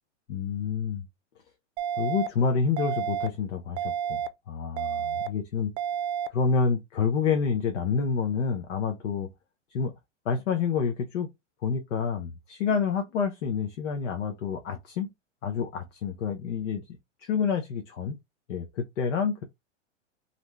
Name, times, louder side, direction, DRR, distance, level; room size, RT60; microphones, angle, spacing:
voice 1, 0.3-1.1 2.0-5.7 6.3-9.3 9.7-9.9 10.3-11.3 11.6-15.1 15.4-16.8 17.2-18.2 18.5-19.4, left 6 dB, 75° left, 0.7 m, -28 dB
sound 1, 1.8-2.3 2.8-3.3 3.8-4.3 4.8-5.3 5.8-6.3, right 9 dB, 65° right, 0.5 m, -30 dB
2.6 x 2.1 x 2.9 m
hypercardioid pair, 120°, 37 cm